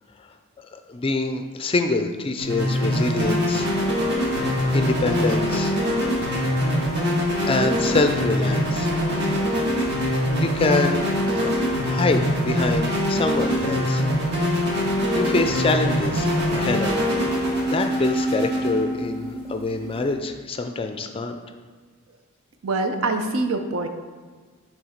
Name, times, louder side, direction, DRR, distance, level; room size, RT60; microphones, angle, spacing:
voice 1, 0.7-3.7 4.7-5.7 7.5-8.9 10.4-11.0 11.3-11.5 11.8-14.0 15.1-17.0 17.4-21.3, left 3 dB, 25° left, 7 dB, 0.4 m, -25 dB
sound 1, 2.4-20.1, equal, 55° right, 1.5 m, -23 dB
voice 2, 22.6-23.9, right 3 dB, 80° right, 6 dB, 0.6 m, -24 dB
6.9 x 3.3 x 5.0 m, 1.5 s
head